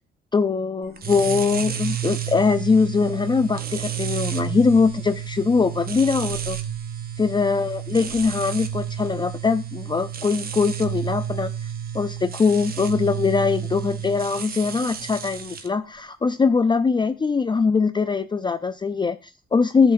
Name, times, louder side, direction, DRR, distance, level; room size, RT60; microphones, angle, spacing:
voice 1, 0.3-6.6 7.2-11.5 11.9-19.9, left 5 dB, 20° left, 10 dB, 0.5 m, -22 dB
sound 1, 1.0-15.7, right 9 dB, 50° right, 1.0 m, -31 dB
11.0 x 7.8 x 2.6 m, 0.29 s
cardioid pair, 90°, 20 cm